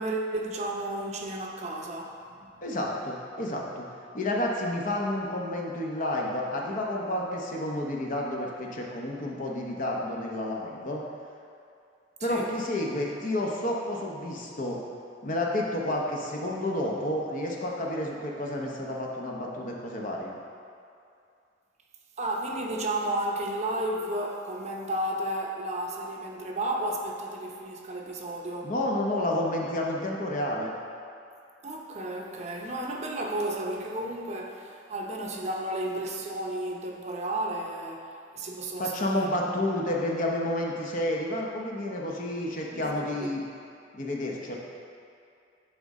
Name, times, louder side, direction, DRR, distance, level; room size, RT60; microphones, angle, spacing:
voice 1, 0.0-2.5 12.2-12.6 22.2-28.7 31.6-39.8 42.7-43.3, right 1 dB, 35° right, 0 dB, 0.7 m, -33 dB
voice 2, 2.6-3.9 4.1-11.0 12.2-14.8 15.2-20.3 28.6-30.7 38.8-43.4 43.9-44.6, left 1 dB, 45° left, -2 dB, 0.9 m, -30 dB
10.0 x 3.7 x 4.2 m, 2.5 s
head